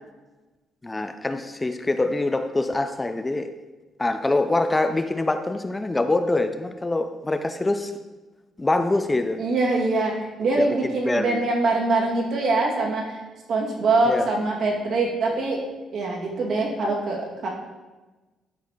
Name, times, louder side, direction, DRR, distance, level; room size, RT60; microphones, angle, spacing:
voice 1, 0.8-3.5 4.0-7.9 8.6-9.4 10.6-11.5 14.0-14.3, left 2 dB, 20° left, 8 dB, 0.5 m, -24 dB
voice 2, 9.4-13.2 13.5-15.6 15.9-17.5, right 3 dB, 65° right, -2 dB, 2.3 m, -23 dB
11.5 x 4.2 x 5.0 m, 1.2 s
cardioid pair, 90°, 0 cm